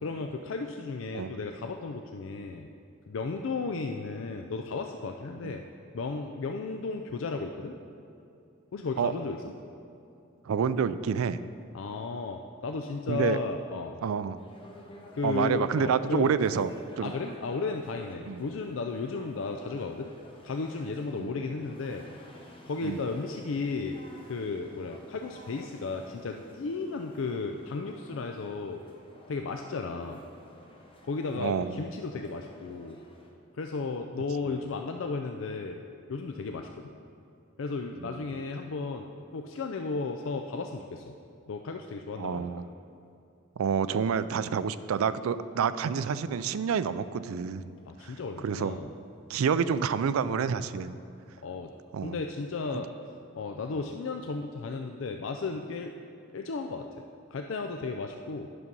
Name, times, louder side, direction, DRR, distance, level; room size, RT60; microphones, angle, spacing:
voice 1, 0.0-2.7 3.1-5.6 5.9-7.7 8.7-9.4 11.7-14.0 15.1-16.3 17.0-20.1 20.4-22.0 22.7-24.0 24.3-28.8 29.3-30.2 31.1-33.0 33.5-35.8 36.1-36.9 37.6-41.1 41.5-42.5 47.9-48.9 51.4-51.7 52.0-52.9 53.3-55.9 56.3-56.9 57.3-58.5, left 4 dB, 70° left, 4 dB, 0.4 m, -34 dB
voice 2, 10.5-11.4 13.1-13.4 14.0-14.4 15.2-16.7 17.0-17.1 18.3-18.4 21.2-21.3 22.8-23.0 31.4-31.8 38.0-38.1 42.2-42.7 43.6-47.8 48.0-48.1 48.4-48.8 49.3-50.9 51.9-52.2 52.7-52.8, right 6 dB, 90° right, 14 dB, 0.4 m, -28 dB
sound 1, 14.3-33.3, left 1 dB, 25° left, 1.0 m, -52 dB
9.9 x 6.2 x 5.3 m, 2.7 s
head